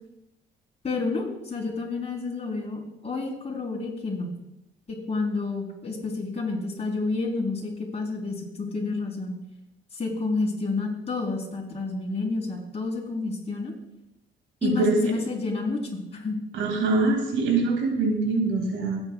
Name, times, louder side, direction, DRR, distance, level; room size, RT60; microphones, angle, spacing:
voice 1, 0.8-4.3 4.9-9.4 9.9-13.7 14.6-16.4, left 3 dB, 30° left, -2 dB, 3.5 m, -30 dB
voice 2, 14.6-15.0 16.5-19.0, right 3 dB, 85° right, 2 dB, 2.2 m, -24 dB
16.0 x 8.7 x 2.3 m, 0.90 s
cardioid pair, 90°, 20 cm